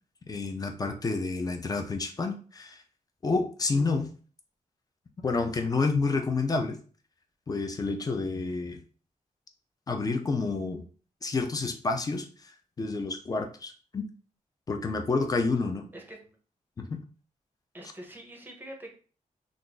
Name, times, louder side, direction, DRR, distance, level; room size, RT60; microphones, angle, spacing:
voice 1, 0.3-2.8 3.2-4.1 5.2-6.8 7.5-8.8 9.9-10.9 11.2-12.5 12.8-14.1 14.7-15.9 16.8-17.0, left 3 dB, 30° left, 5 dB, 0.4 m, -29 dB
voice 2, 15.9-16.4 17.7-18.9, right 1 dB, 15° right, 2 dB, 0.7 m, -45 dB
2.5 x 2.4 x 3.8 m, 0.40 s
wide cardioid pair, 160°, 14 cm